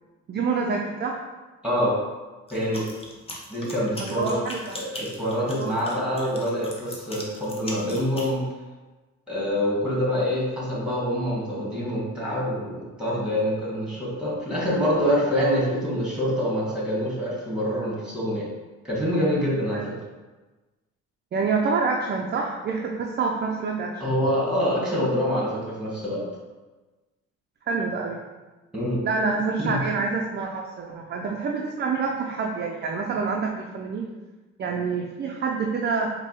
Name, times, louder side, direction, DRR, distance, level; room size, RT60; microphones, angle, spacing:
voice 1, 0.3-1.2 4.0-4.8 5.6-5.8 15.4-15.6 19.7-19.8 21.3-24.2 27.7-28.2 29.0-34.1 34.6-36.1, right 4 dB, 35° right, 0 dB, 0.4 m, -27 dB
voice 2, 1.6-1.9 2.5-2.8 3.5-4.4 4.7-4.9 5.1-8.4 9.3-18.5 18.8-19.8 24.0-26.2 28.7-29.0 29.6-29.8, equal, ahead, -6 dB, 1.5 m, -25 dB
sound 1, 2.5-8.3, left 1 dB, 20° left, 0.7 m, -39 dB
4.6 x 2.2 x 2.9 m, 1.2 s
cardioid pair, 90°, 30 cm